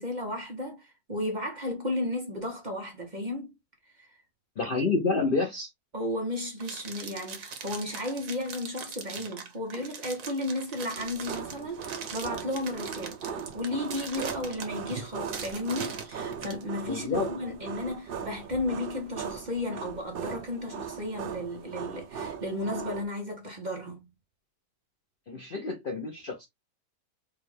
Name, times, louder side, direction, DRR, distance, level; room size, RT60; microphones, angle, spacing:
voice 1, 0.0-3.5 4.0-4.2 4.8-5.0 5.9-13.2 13.5-24.1, left 1 dB, 35° right, 1.1 m, -34 dB
voice 2, 4.6-5.7 16.9-17.3 25.3-26.5, left 4 dB, 45° left, 0.7 m, -28 dB
sound 1, 6.6-16.6, right 6 dB, 85° right, 1.5 m, -41 dB
sound 2, 11.0-23.0, right 6 dB, 60° right, 0.6 m, -39 dB
4.9 x 2.5 x 3.2 m
omnidirectional pair, 1.6 m